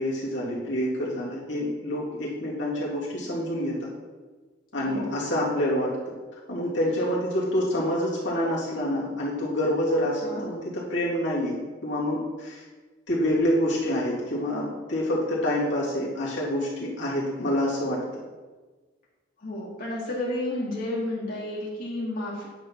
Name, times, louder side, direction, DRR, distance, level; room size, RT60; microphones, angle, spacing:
voice 1, 0.0-3.9 4.7-5.9 6.5-12.6 13.1-18.0, left 1 dB, 75° left, -6 dB, 2.9 m, -27 dB
voice 2, 4.8-5.2 10.2-10.4 19.4-22.5, left 1 dB, 50° left, -6 dB, 2.7 m, -31 dB
9.7 x 5.2 x 6.0 m, 1.3 s
head